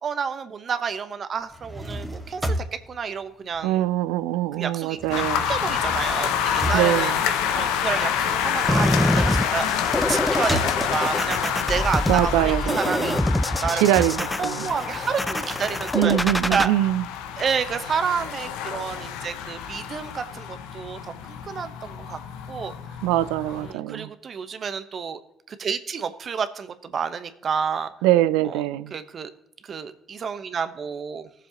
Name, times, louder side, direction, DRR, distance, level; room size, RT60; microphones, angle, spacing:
voice 1, 0.0-2.6 2.9-3.9 4.6-7.1 7.5-9.7 10.1-13.2 13.6-16.7 17.4-21.0 21.3-22.2 22.5-22.7 23.5-25.2 25.5-27.9 28.4-28.6 28.9-29.3 29.6-31.3, right 6 dB, 50° right, 1.0 m, -30 dB
sound 1, 1.4-4.2 4.5-11.3 11.8-15.3, right 1 dB, 10° right, 1.9 m, -34 dB
voice 2, 3.6-5.5 6.7-7.2 12.1-13.2 13.8-14.7 15.9-17.0 23.0-24.1 28.0-28.9, right 14 dB, 85° right, 0.4 m, -23 dB
sound 2, 5.1-23.7, left 8 dB, 80° left, 0.6 m, -28 dB
sound 3, 8.7-16.7, left 1 dB, 10° left, 0.4 m, -25 dB
17.5 x 7.1 x 2.9 m
hypercardioid pair, 60°, 0 cm